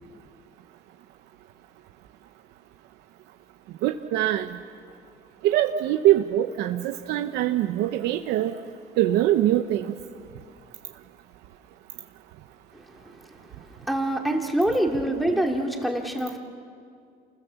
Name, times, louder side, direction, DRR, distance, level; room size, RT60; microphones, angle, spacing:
voice 1, 3.8-4.5 5.4-8.5 9.0-9.8, right 13 dB, 90° right, 6 dB, 0.9 m, -23 dB
voice 2, 12.7-13.3 13.8-16.4, right 1 dB, ahead, 2 dB, 2.6 m, -26 dB
28.0 x 21.0 x 7.1 m, 2.2 s
cardioid pair, 110°, 17 cm